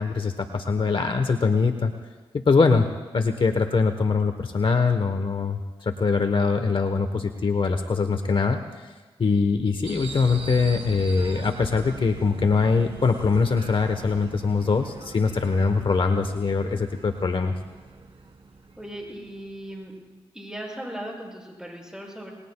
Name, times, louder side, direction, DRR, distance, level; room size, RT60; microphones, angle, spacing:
voice 1, 0.0-1.9 2.3-2.9 3.1-8.6 9.2-17.5, left 4 dB, 55° left, 7 dB, 1.0 m, -23 dB
sound 1, 9.8-19.7, right 3 dB, 70° right, 2.1 m, -41 dB
voice 2, 18.8-20.0 20.3-22.3, right 1 dB, 5° right, -2 dB, 6.9 m, -37 dB
28.0 x 20.5 x 2.3 m, 1.3 s
cardioid pair, 60°, 10 cm